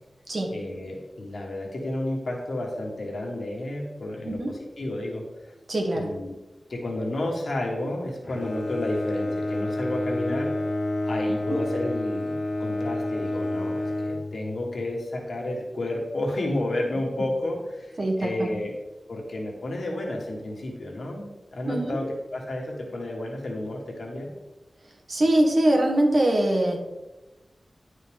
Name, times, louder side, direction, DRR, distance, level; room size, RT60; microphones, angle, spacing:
voice 1, 0.5-5.5 5.9-6.3 6.7-10.5 11.0-18.7 19.1-22.0 22.3-24.3, left 1 dB, 70° left, -1 dB, 1.4 m, -31 dB
voice 2, 5.7-6.1 11.5-11.6 18.0-18.5 21.7-22.1 25.1-26.8, right 1 dB, 55° right, 1 dB, 1.5 m, -23 dB
Bowed string instrument, 8.2-14.9, left 1 dB, 40° left, 0.6 m, -29 dB
11.0 x 4.1 x 3.5 m, 1.1 s
wide cardioid pair, 75°, 0 cm